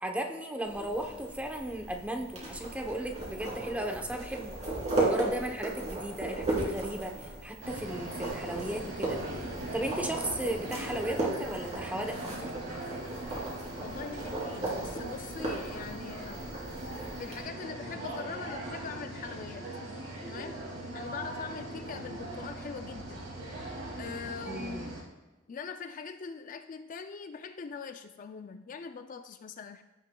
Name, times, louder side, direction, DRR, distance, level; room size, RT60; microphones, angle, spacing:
voice 1, 0.0-4.6 5.0-9.5 9.7-12.6 24.4-24.9, right 1 dB, 5° right, 3 dB, 0.8 m, -36 dB
sound 1, 0.6-17.4, right 2 dB, 35° right, 2.9 m, -36 dB
sound 2, 7.6-25.0, right 1 dB, 80° right, 2.4 m, -40 dB
voice 2, 13.8-16.6 17.2-19.7 20.3-20.6 20.9-23.3 24.0-24.9 25.5-29.8, left 5 dB, 40° left, 8 dB, 0.4 m, -42 dB
15.5 x 6.8 x 2.3 m, 1.1 s
head